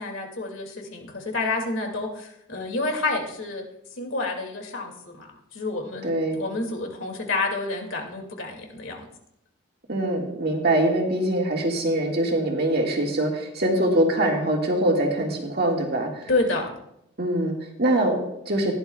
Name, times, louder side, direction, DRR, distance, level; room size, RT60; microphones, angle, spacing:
voice 1, 0.0-3.6 4.0-5.3 5.5-9.1 16.3-16.7, left 2 dB, 65° left, 2 dB, 2.3 m, -29 dB
voice 2, 6.0-6.4 9.9-16.3 17.2-18.7, right 1 dB, 50° right, 1 dB, 1.9 m, -23 dB
16.5 x 11.0 x 2.3 m, 0.79 s
head